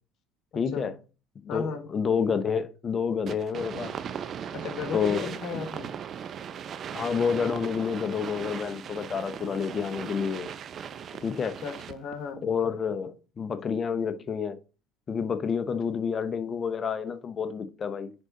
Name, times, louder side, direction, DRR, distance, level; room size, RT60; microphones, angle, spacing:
voice 1, 0.5-0.9 1.5-3.9 4.9-5.3 6.9-10.5 11.2-11.6 12.4-14.6 15.1-18.1, left 6 dB, 35° left, 0.9 m, -29 dB
voice 2, 1.5-1.9 4.5-6.0 11.6-12.4, left 5 dB, 55° left, 1.7 m, -35 dB
sound 1, 3.3-12.2, right 8 dB, 45° right, 0.7 m, -38 dB
9.7 x 3.8 x 3.9 m
hypercardioid pair, 70°, 0 cm